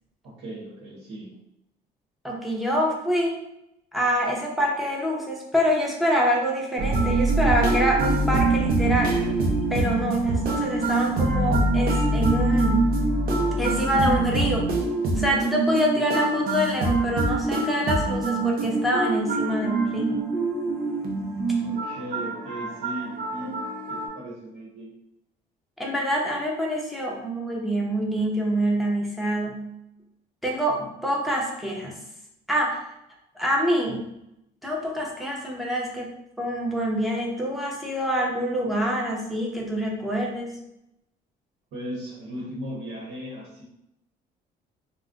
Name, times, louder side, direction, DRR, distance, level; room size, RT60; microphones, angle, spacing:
voice 1, 0.2-1.3 21.6-23.5 23.9-24.9 41.7-43.6, equal, 85° right, -6 dB, 1.0 m, -37 dB
voice 2, 2.2-3.4 3.9-9.2 9.7-12.9 13.6-14.7 15.1-20.3 23.4-23.5 25.8-29.6 30.4-32.0 32.5-32.8 33.4-34.1 34.6-40.6, equal, ahead, -2 dB, 0.7 m, -26 dB
sound 1, 6.8-24.1, right 2 dB, 60° right, 0.6 m, -24 dB
2.4 x 2.1 x 3.7 m, 0.82 s
cardioid pair, 110°, 17 cm